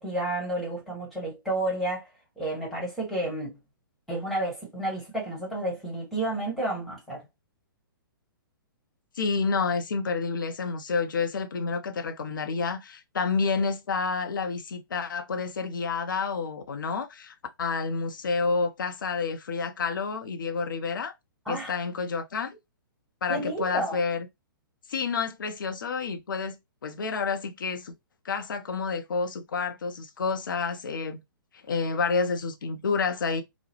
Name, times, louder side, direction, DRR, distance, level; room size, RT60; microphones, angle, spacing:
voice 1, 0.0-2.1 2.4-3.6 4.1-7.2 21.4-21.7 23.3-24.0, right 1 dB, ahead, 1.2 m, -31 dB
voice 2, 9.2-21.1 21.5-22.6 23.2-24.3 24.9-26.6 26.8-27.9 28.2-31.2 31.7-33.4, left 4 dB, 65° left, 0.6 m, -29 dB
3.0 x 2.0 x 2.8 m
figure-of-eight pair, 120°, 12 cm